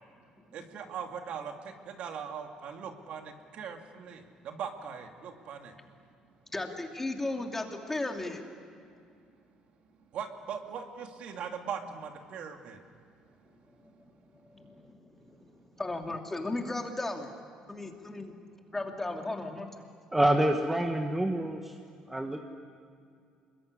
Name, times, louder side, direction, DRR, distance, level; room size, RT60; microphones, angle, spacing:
voice 1, 0.5-1.5 1.9-5.7 10.1-12.8, right 7 dB, 60° right, 4 dB, 2.6 m, -40 dB
voice 2, 6.5-8.4 14.5-15.4 15.8-17.3 17.7-18.4 18.7-19.8, left 2 dB, 15° left, 3 dB, 2.7 m, -35 dB
voice 3, 20.1-21.7 22.1-22.4, right 1 dB, 10° right, 4 dB, 1.4 m, -27 dB
26.0 x 22.0 x 9.8 m, 2.4 s
cardioid pair, 125°, 2 cm